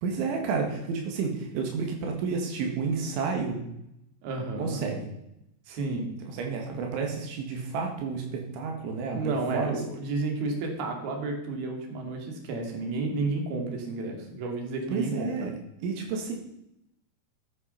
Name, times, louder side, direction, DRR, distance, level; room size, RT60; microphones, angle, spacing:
voice 1, 0.0-3.6 4.6-5.1 6.3-9.7 14.9-15.5 15.8-16.3, right 5 dB, 85° right, 2 dB, 4.3 m, -30 dB
voice 2, 4.2-4.8 5.7-6.1 9.1-15.5, right 3 dB, 60° right, 2 dB, 4.2 m, -31 dB
14.0 x 10.0 x 5.8 m, 0.82 s
omnidirectional pair, 5.3 m